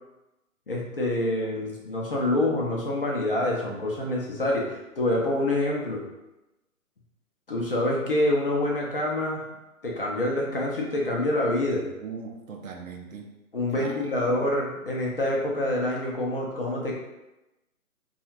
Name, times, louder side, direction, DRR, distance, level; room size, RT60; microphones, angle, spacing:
voice 1, 0.7-6.0 7.5-9.4 9.8-11.8 13.5-16.9, left 1 dB, 40° left, -3 dB, 0.5 m, -26 dB
voice 2, 12.0-13.3 13.7-14.5, right 5 dB, 65° right, 2 dB, 0.6 m, -40 dB
2.7 x 2.3 x 2.8 m, 0.98 s
figure-of-eight pair, 145°, 44 cm